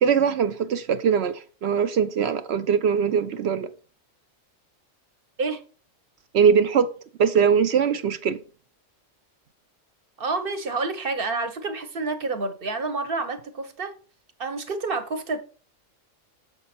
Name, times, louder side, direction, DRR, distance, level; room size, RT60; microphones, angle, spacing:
voice 1, 0.0-3.7 6.3-6.9 7.2-8.4, right 7 dB, 65° right, 0.7 m, -21 dB
voice 2, 10.2-13.9 14.4-15.4, right 3 dB, 50° right, 1.1 m, -28 dB
6.7 x 5.3 x 4.2 m
omnidirectional pair, 1.3 m